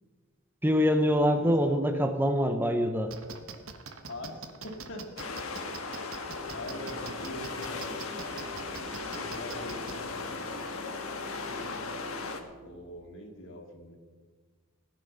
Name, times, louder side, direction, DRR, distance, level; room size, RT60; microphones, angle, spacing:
voice 1, 0.6-3.1, equal, 10° right, 7 dB, 0.7 m, -25 dB
voice 2, 1.4-1.8 4.1-5.1 5.9-8.6 9.1-10.7 12.6-14.0, left 1 dB, 60° left, 3 dB, 2.1 m, -44 dB
sound 1, 3.1-10.0, right 5 dB, 70° right, 1.2 m, -43 dB
sound 2, 5.2-12.4, left 4 dB, 75° left, 1.4 m, -37 dB
sound 3, 6.3-13.1, left 1 dB, 40° right, 1.7 m, -48 dB
16.0 x 10.5 x 5.5 m, 1.5 s
head